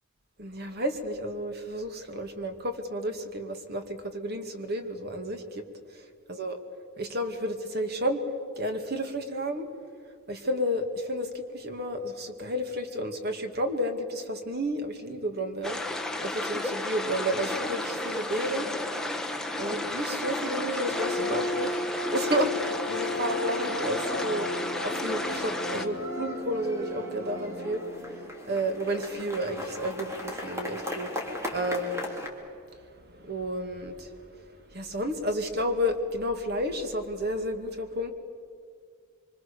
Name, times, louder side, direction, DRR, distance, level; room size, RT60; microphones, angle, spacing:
voice 1, 0.4-5.6 5.9-6.0 6.3-6.6 7.0-8.2 8.6-9.7 10.3-15.8 16.2-18.7 19.6-21.8 22.1-24.5 24.8-27.8 28.5-31.1 31.5-32.0 33.1-34.2 34.7-38.1, equal, 50° right, 6 dB, 2.3 m, -31 dB
sound 1, 15.6-25.9, left 2 dB, 5° left, 1.3 m, -33 dB
sound 2, 17.0-32.3, left 1 dB, 15° right, 3.2 m, -36 dB
25.5 x 25.5 x 7.1 m, 2.2 s
head